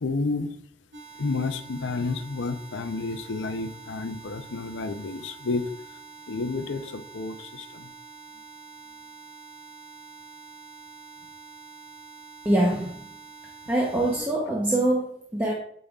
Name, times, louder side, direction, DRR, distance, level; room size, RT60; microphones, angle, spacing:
voice 1, 0.0-0.5 1.2-5.7 6.3-7.9, left 3 dB, 85° left, 9 dB, 0.6 m, -30 dB
sound 1, 0.9-14.2, right 4 dB, 80° right, 1.9 m, -46 dB
voice 2, 12.4-13.0 13.7-15.5, right 1 dB, 10° right, -3 dB, 0.8 m, -24 dB
8.7 x 5.2 x 2.3 m, 0.66 s
head